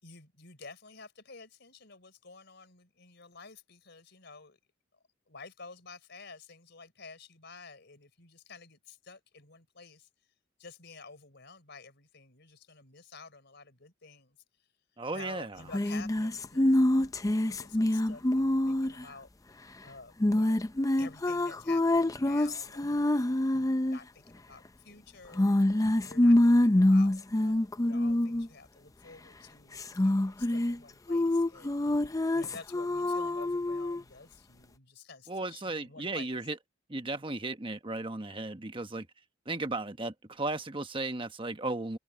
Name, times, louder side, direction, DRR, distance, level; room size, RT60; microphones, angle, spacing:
voice 1, 0.0-4.6 5.3-10.1 10.6-14.4 15.1-19.3 19.8-20.6 21.0-25.5 26.0-32.0 32.3-36.4, left 4 dB, 60° left, 4.7 m, -51 dB
voice 2, 15.0-15.6 35.3-36.6 36.9-39.1 39.5-42.0, right 2 dB, 25° right, 1.2 m, -35 dB
sound 1, 15.7-19.0 20.2-24.0 25.4-28.5 29.8-30.8 31.1-34.0, left 1 dB, 15° left, 0.5 m, -26 dB
head